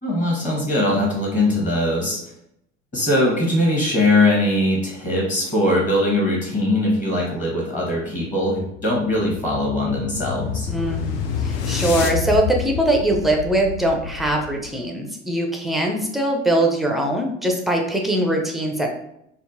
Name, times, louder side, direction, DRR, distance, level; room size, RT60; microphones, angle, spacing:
voice 1, 0.0-2.2 2.9-10.7, left 1 dB, 20° left, -3 dB, 1.1 m, -21 dB
sound 1, 8.8-14.8, left 7 dB, 65° left, 0.5 m, -28 dB
voice 2, 10.7-18.9, right 1 dB, ahead, 1 dB, 0.4 m, -22 dB
3.6 x 2.1 x 2.5 m, 0.77 s
figure-of-eight pair, 70°, 36 cm